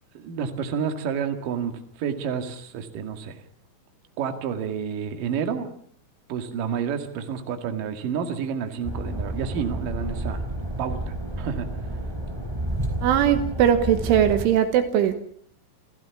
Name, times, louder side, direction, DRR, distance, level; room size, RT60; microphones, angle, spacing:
voice 1, 0.1-3.4 4.2-5.7 6.3-10.4 10.8-11.7, right 7 dB, 50° right, 6 dB, 3.0 m, -30 dB
sound 1, 8.8-14.5, right 1 dB, 5° right, 2.7 m, -30 dB
voice 2, 13.0-15.1, right 9 dB, 75° right, 9 dB, 3.6 m, -20 dB
28.0 x 15.5 x 7.2 m, 0.62 s
omnidirectional pair, 5.9 m